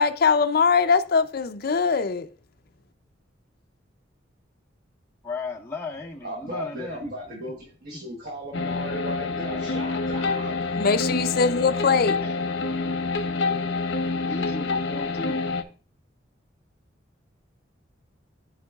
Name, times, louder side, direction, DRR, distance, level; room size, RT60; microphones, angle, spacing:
voice 1, 0.0-2.3 10.7-12.3, left 5 dB, 55° left, 0.5 m, -21 dB
voice 2, 5.2-7.0 12.2-12.4 14.3-15.4, left 3 dB, 15° left, 1.3 m, -35 dB
voice 3, 6.2-10.6, equal, 55° right, 1.2 m, -36 dB
sound 1, 8.5-15.6, left 3 dB, 85° left, 0.7 m, -27 dB
13.5 x 4.6 x 2.3 m
head